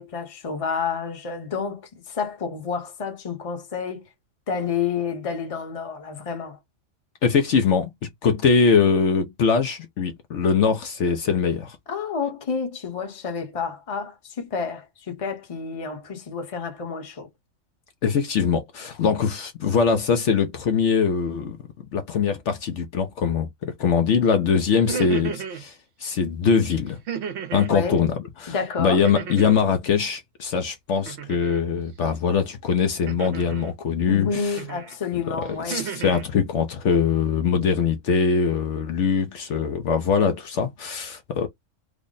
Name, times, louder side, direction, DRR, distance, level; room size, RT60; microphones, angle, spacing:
voice 1, 0.0-4.0 4.5-6.6 11.9-17.3 27.7-28.0 28.5-29.0 34.1-35.8, left 5 dB, 30° left, 0.8 m, -29 dB
voice 2, 7.2-11.8 18.0-21.6 21.9-27.0 27.5-34.6 35.1-35.2 35.5-41.5, left 6 dB, 65° left, 1.0 m, -22 dB
sound 1, 24.7-25.6 27.1-27.8 29.0-29.7 31.1-31.6 33.1-33.7 34.6-34.9 35.4-36.3, right 7 dB, 60° right, 0.9 m, -33 dB
3.4 x 2.0 x 3.8 m
omnidirectional pair, 1.4 m